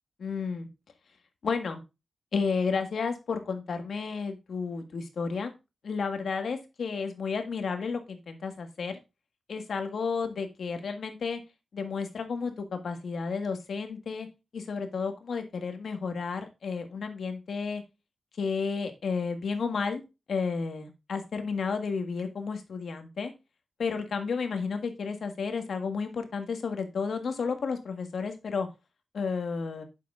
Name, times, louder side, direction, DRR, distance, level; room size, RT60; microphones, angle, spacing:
voice 1, 0.2-0.7 1.4-1.8 2.3-5.5 5.8-9.0 9.5-11.4 11.7-14.3 14.5-17.8 18.4-20.0 20.3-23.3 23.8-28.7 29.1-29.8, left 5 dB, 70° left, 6 dB, 1.6 m, -32 dB
9.2 x 7.0 x 2.5 m, 0.26 s
wide cardioid pair, 155°, 0 cm